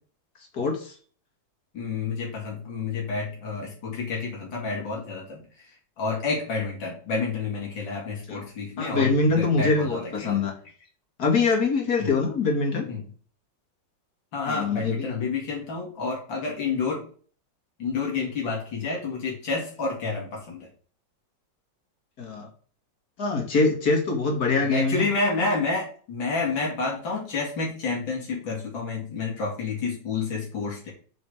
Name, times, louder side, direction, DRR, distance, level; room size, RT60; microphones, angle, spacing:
voice 1, 0.5-0.9 8.3-8.4 8.8-10.5 11.2-12.9 14.5-15.2 22.2-22.5 23.2-25.1, left 4 dB, 55° left, 2 dB, 2.5 m, -24 dB
voice 2, 1.7-5.4 6.0-10.4 12.0-12.1 12.8-13.0 14.3-17.0 17.8-20.7 24.6-30.9, left 4 dB, 85° left, -2 dB, 3.1 m, -29 dB
7.8 x 5.0 x 5.0 m, 0.43 s
omnidirectional pair, 2.0 m